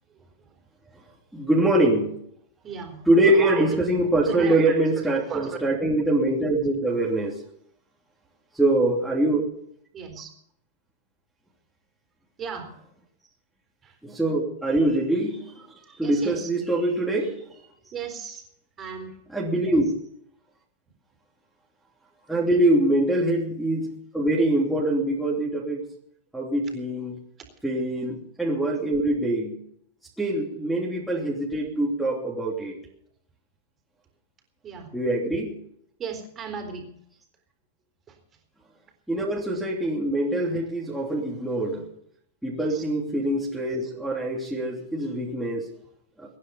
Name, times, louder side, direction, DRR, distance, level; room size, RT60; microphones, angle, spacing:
voice 1, 1.3-2.2 3.1-7.4 8.5-9.5 14.0-15.5 16.0-17.3 19.3-19.9 22.3-25.8 26.3-27.2 27.6-29.6 30.2-32.7 34.9-35.6 39.1-41.8 42.4-45.7, right 1 dB, ahead, -5 dB, 3.1 m, -24 dB
voice 2, 2.6-3.9 4.2-5.6 9.9-10.3 12.4-12.7 13.8-14.0 15.8-16.5 17.9-18.5 18.8-19.2 22.3-22.6 34.6-34.9 36.0-36.9 38.1-38.2 42.5-42.8, right 6 dB, 25° right, 5 dB, 3.9 m, -35 dB
24.5 x 9.7 x 5.6 m, 0.70 s
hypercardioid pair, 135°, 0 cm